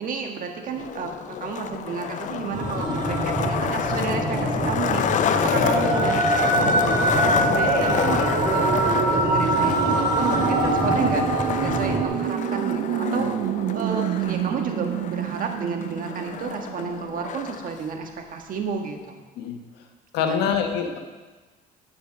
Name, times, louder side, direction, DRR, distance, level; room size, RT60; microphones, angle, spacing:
voice 1, 0.0-6.2 6.5-13.3 13.7-19.2 20.2-20.5, right 5 dB, 55° right, 3 dB, 1.5 m, -31 dB
Skateboard, 0.7-17.7, left 8 dB, 50° left, 0.5 m, -29 dB
sound 1, 2.5-12.0, right 1 dB, 30° right, 2.0 m, -24 dB
sound 2, 5.5-17.3, right 11 dB, 70° right, 0.5 m, -29 dB
voice 2, 20.1-21.0, left 7 dB, 85° left, 4 dB, 1.3 m, -25 dB
10.0 x 6.9 x 5.2 m, 1.3 s
cardioid pair, 110°, 17 cm